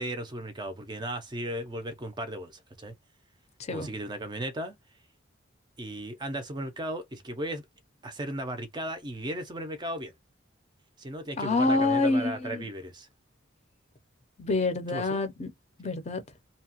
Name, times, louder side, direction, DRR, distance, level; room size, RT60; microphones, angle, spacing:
voice 1, 0.0-2.9 3.7-4.8 5.8-7.6 8.0-10.1 11.0-13.1 14.9-15.2, right 1 dB, 20° right, 0.4 m, -36 dB
voice 2, 11.4-12.7 14.4-15.5 15.8-16.2, left 2 dB, 35° left, 0.5 m, -27 dB
2.7 x 2.1 x 2.8 m
head